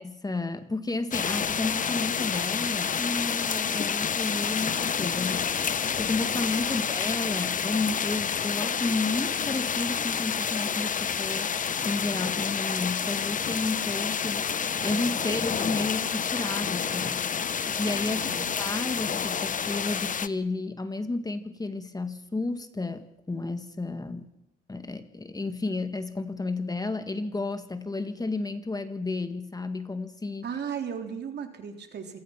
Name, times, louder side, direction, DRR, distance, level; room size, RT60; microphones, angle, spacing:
voice 1, 0.0-11.5 11.8-24.3 24.7-30.5, left 3 dB, 20° left, 9 dB, 1.9 m, -32 dB
sound 1, 1.1-20.3, left 7 dB, 40° left, 1.0 m, -29 dB
voice 2, 18.1-18.5 30.4-32.2, right 7 dB, 55° right, 5 dB, 3.7 m, -36 dB
27.0 x 18.5 x 6.0 m, 0.86 s
cardioid pair, 90°, 20 cm